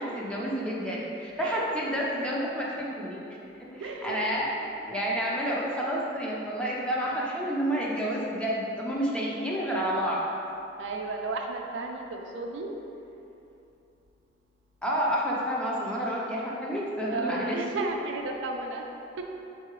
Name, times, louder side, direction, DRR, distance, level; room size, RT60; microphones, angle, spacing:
voice 1, 0.0-3.2 3.6-4.5 4.9-10.2 14.8-17.6, equal, 5° left, -5 dB, 0.5 m, -29 dB
voice 2, 3.8-4.2 4.6-4.7 10.8-12.8 17.1-18.8 19.2-19.3, right 3 dB, 80° right, 2 dB, 0.4 m, -34 dB
4.7 x 3.8 x 3.0 m, 2.8 s
head